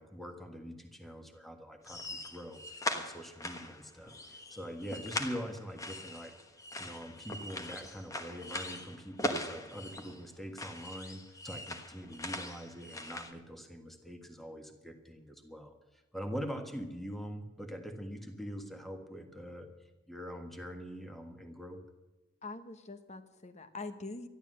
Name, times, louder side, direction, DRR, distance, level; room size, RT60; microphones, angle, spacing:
voice 1, 0.0-6.3 6.8-19.7 20.1-21.8, equal, ahead, 5 dB, 1.5 m, -44 dB
sound 1, 1.9-10.3 10.6-13.3, left 1 dB, 20° left, 1.3 m, -41 dB
voice 2, 22.4-24.3, left 3 dB, 40° left, 10 dB, 1.1 m, -44 dB
12.5 x 11.5 x 7.6 m, 1.1 s
head